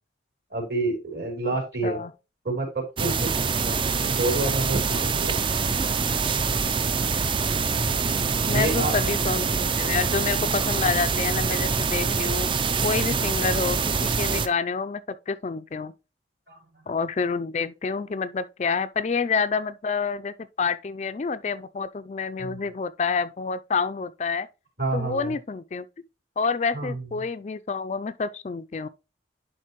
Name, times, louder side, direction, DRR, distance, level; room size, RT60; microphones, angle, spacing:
voice 1, 0.5-2.0 2.4-5.4 8.5-9.0 16.5-16.8 22.4-22.7 24.8-25.3 26.7-27.0, right 2 dB, 55° right, 4.0 m, -29 dB
sound 1, 3.0-14.5, right 5 dB, 25° right, 0.4 m, -25 dB
voice 2, 8.5-12.5 12.8-15.9 16.9-24.5 24.9-25.9 26.4-28.9, left 5 dB, 35° left, 0.4 m, -28 dB
11.0 x 4.4 x 3.0 m
head